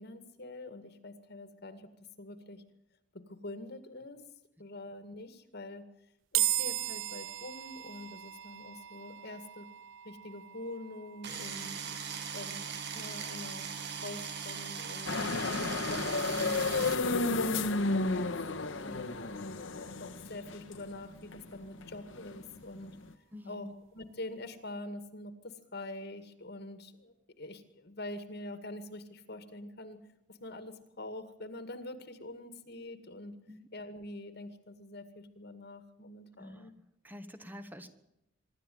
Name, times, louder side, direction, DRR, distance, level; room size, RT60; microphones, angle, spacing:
voice 1, 0.0-2.6 3.1-4.2 4.6-5.8 6.3-9.7 10.0-11.8 12.3-12.7 12.9-13.7 14.0-15.2 15.6-18.3 18.6-23.0 23.4-33.3 33.7-36.7, left 1 dB, 55° left, 10 dB, 2.1 m, -45 dB
sound 1, 6.3-19.7, right 14 dB, 90° right, 0.8 m, -40 dB
sound 2, 11.2-16.9, right 6 dB, 60° right, 2.4 m, -39 dB
sound 3, 15.1-23.1, left 3 dB, 75° left, 1.6 m, -32 dB
voice 2, 23.3-23.7 33.5-33.6 36.4-36.7 37.0-37.9, left 1 dB, 10° right, 9 dB, 1.6 m, -46 dB
25.0 x 12.5 x 9.3 m, 0.86 s
head